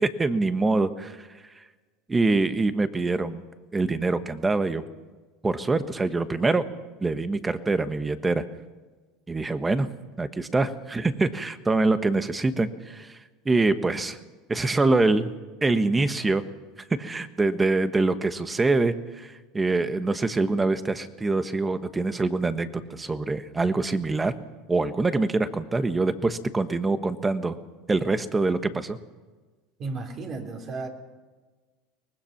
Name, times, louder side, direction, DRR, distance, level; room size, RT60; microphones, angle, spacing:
voice 1, 0.0-1.3 2.1-3.4 3.7-4.8 5.4-6.6 7.0-8.4 9.3-9.9 10.2-13.2 13.4-14.2 14.5-15.3 15.6-16.4 17.0-24.3 24.7-27.6 27.9-29.0, right 3 dB, 15° right, 11 dB, 1.3 m, -24 dB
voice 2, 29.8-30.9, right 3 dB, 40° right, 3 dB, 3.6 m, -33 dB
23.5 x 19.5 x 6.0 m, 1.3 s
supercardioid pair, 115°, 0 cm